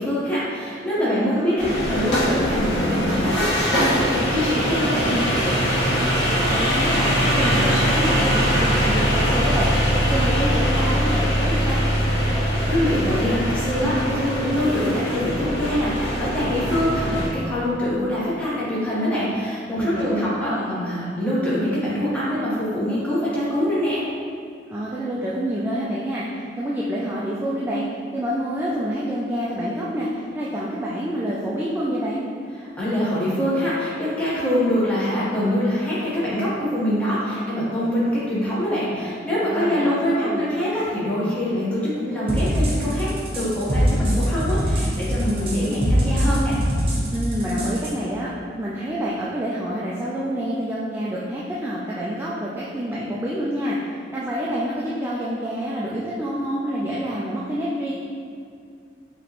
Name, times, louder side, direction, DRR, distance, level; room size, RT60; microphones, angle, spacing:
voice 1, 0.0-5.3 12.3-24.0 32.8-46.6, equal, 10° left, -10 dB, 1.2 m, -24 dB
voice 2, 1.0-1.7 6.0-11.8 19.8-20.9 24.7-27.8 28.1-32.3 39.4-40.5 47.1-53.8 54.1-57.9, equal, 10° right, -7 dB, 0.3 m, -27 dB
sound 1, 1.6-17.3, equal, 65° left, 1.3 m, -22 dB
sound 2, 42.3-47.9, equal, 30° right, 0.7 m, -22 dB
5.0 x 3.0 x 3.0 m, 2.4 s
head